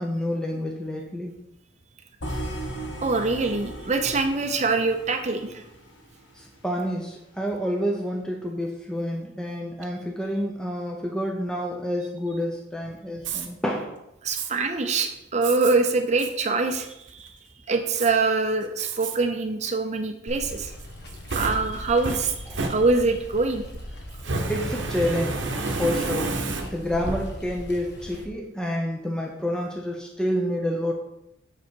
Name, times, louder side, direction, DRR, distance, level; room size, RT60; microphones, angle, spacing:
voice 1, 0.0-1.3 6.3-13.9 22.5-22.7 24.5-26.4 26.7-30.9, equal, 5° left, 0 dB, 0.6 m, -29 dB
sound 1, 2.2-6.3, right 1 dB, 80° left, 1.6 m, -36 dB
voice 2, 3.0-5.6 14.2-17.3 17.7-20.7 21.3-22.3 22.6-23.6, right 3 dB, 35° right, 6 dB, 0.6 m, -24 dB
Fire, 13.2-13.5 14.3-14.5 15.4-15.7 16.2-16.3 16.8-17.3 17.9-18.1 18.8-19.2 19.6-19.7 20.8-23.3 24.2-27.0, right 3 dB, 75° right, 0.9 m, -30 dB
Water, 20.3-28.2, left 1 dB, 60° left, 1.2 m, -38 dB
7.0 x 5.4 x 4.5 m, 0.84 s
head